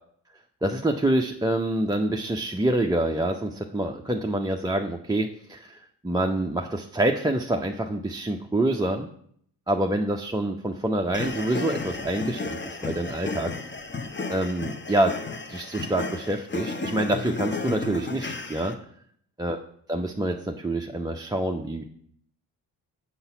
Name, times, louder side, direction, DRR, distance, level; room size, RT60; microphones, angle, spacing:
voice 1, 0.6-9.1 9.7-13.5 14.3-15.1 15.5-18.7 19.4-19.6 19.9-21.8, right 1 dB, 10° right, 2 dB, 0.5 m, -26 dB
sound 1, 11.1-18.7, left 3 dB, 25° left, 0.9 m, -33 dB
6.5 x 4.0 x 5.7 m, 0.65 s
hypercardioid pair, 45°, 47 cm